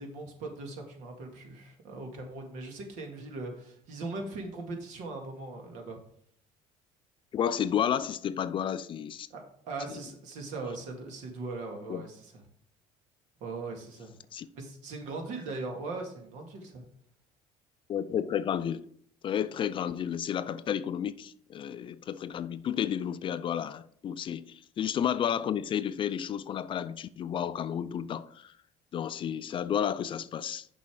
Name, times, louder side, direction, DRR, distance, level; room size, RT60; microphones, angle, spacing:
voice 1, 0.0-6.0 9.3-12.3 13.4-14.1 14.5-16.9, right 3 dB, 70° right, 2.1 m, -39 dB
voice 2, 7.3-9.3 9.9-10.0 11.9-12.1 14.3-14.5 17.9-18.8 19.2-28.5 28.9-30.7, left 9 dB, 40° left, 0.4 m, -31 dB
6.9 x 5.5 x 4.9 m
supercardioid pair, 105°, 13 cm